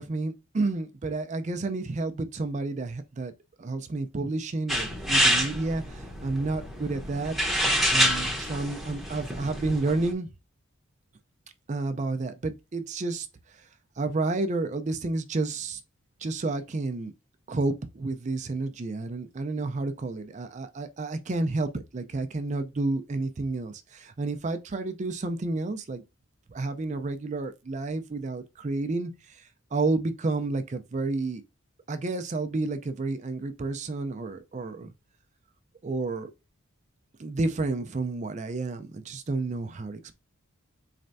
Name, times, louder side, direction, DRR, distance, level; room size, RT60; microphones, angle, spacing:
voice 1, 0.0-3.3 3.6-7.4 7.9-10.3 11.7-13.3 14.0-15.8 16.2-17.1 17.5-26.0 26.5-29.4 29.7-31.4 31.9-34.9 35.8-36.3 37.2-40.1, right 3 dB, 35° right, 0.4 m, -30 dB
sound 1, 4.7-10.1, equal, ahead, 0.7 m, -27 dB
4.3 x 3.3 x 2.5 m
head